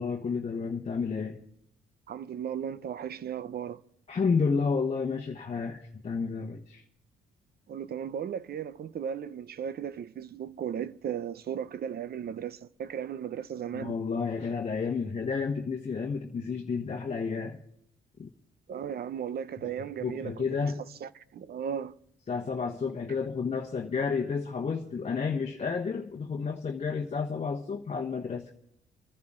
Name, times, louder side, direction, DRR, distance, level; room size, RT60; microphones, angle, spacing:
voice 1, 0.0-1.4 4.1-6.8 13.7-17.6 18.2-18.3 20.0-20.8 22.3-28.5, left 5 dB, 35° left, 1.2 m, -31 dB
voice 2, 2.1-3.8 7.7-13.9 18.7-20.7 21.0-22.0, right 8 dB, 50° right, 0.6 m, -36 dB
28.5 x 10.5 x 3.7 m
cardioid pair, 90°, 20 cm